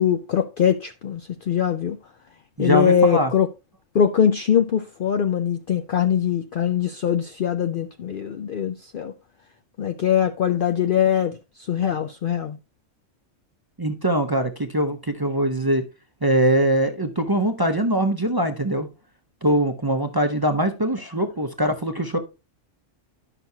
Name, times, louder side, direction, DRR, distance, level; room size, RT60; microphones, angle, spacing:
voice 1, 0.0-2.0 2.6-3.5 3.9-9.1 9.8-12.6, left 8 dB, 60° left, 0.5 m, -22 dB
voice 2, 2.6-3.3 13.8-15.8 16.2-18.9 19.4-22.2, right 1 dB, 25° right, 0.6 m, -22 dB
11.0 x 5.9 x 2.7 m
omnidirectional pair, 1.3 m